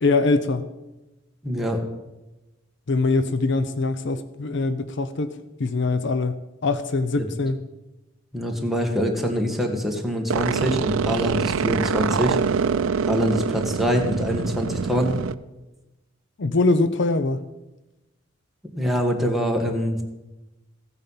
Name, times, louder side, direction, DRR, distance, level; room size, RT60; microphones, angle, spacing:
voice 1, 0.0-0.7 2.9-5.3 5.6-7.6 16.4-17.4, left 3 dB, 60° left, 12 dB, 0.6 m, -23 dB
voice 2, 1.4-1.8 7.2-7.3 8.3-12.4 13.1-15.1 18.8-20.0, equal, ahead, 1 dB, 1.7 m, -24 dB
sound 1, 10.3-15.4, right 6 dB, 90° right, 0.5 m, -25 dB
15.5 x 8.9 x 5.7 m, 1.0 s
head